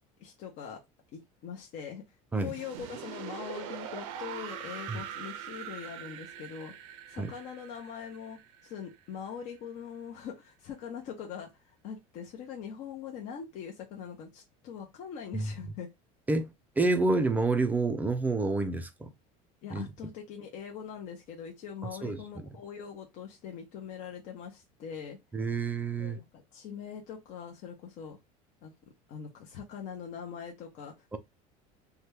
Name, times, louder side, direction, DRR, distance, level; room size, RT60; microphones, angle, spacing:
voice 1, 0.2-0.8 1.1-2.1 2.4-6.7 7.1-11.5 11.8-15.9 19.6-25.2 26.0-28.2 28.6-28.7 29.1-30.9, left 7 dB, 50° left, 0.7 m, -42 dB
sound 1, 2.4-9.3, right 9 dB, 85° right, 0.5 m, -43 dB
voice 2, 16.3-19.1 19.7-19.8 22.0-22.4 25.3-26.2 31.1-31.2, right 3 dB, 10° right, 0.3 m, -29 dB
2.8 x 2.2 x 3.3 m
cardioid pair, 150°, 17 cm